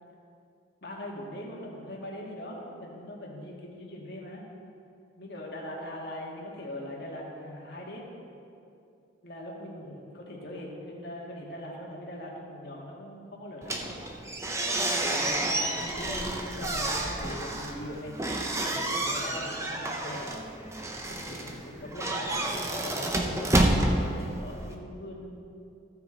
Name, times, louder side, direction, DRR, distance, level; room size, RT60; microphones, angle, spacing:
voice 1, 0.8-4.4 5.2-8.1 9.2-14.0 14.9-20.4 21.0-25.4, left 1 dB, 55° left, -3 dB, 1.8 m, -41 dB
sound 1, 13.6-24.7, right 1 dB, 15° right, 0.7 m, -30 dB
15.0 x 6.2 x 4.4 m, 2.6 s
head